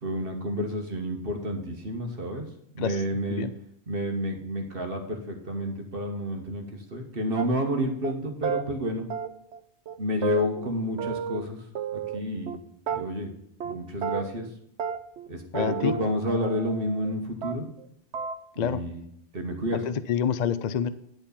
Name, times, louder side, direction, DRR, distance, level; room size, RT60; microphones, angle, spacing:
voice 1, 0.0-2.5 2.7-3.5 3.9-9.0 10.0-11.6 11.9-12.6 12.9-13.3 13.6-14.5 15.3-17.7 18.5-19.0 19.3-19.8, equal, 55° right, 3 dB, 1.6 m, -30 dB
sound 1, 7.4-7.7 8.0-8.1 8.4-8.6 9.1-9.6 9.9-10.0 10.2-11.5 11.7-12.6 12.9-13.3 13.6-13.8 14.0-14.5 14.8-17.1 17.4-17.8 18.1-18.4, right 8 dB, 80° right, 1.0 m, -32 dB
voice 2, 15.5-15.9 18.6-18.8 19.7-20.9, left 7 dB, 50° left, 14 dB, 0.6 m, -27 dB
10.5 x 4.4 x 7.0 m, 0.74 s
omnidirectional pair, 1.1 m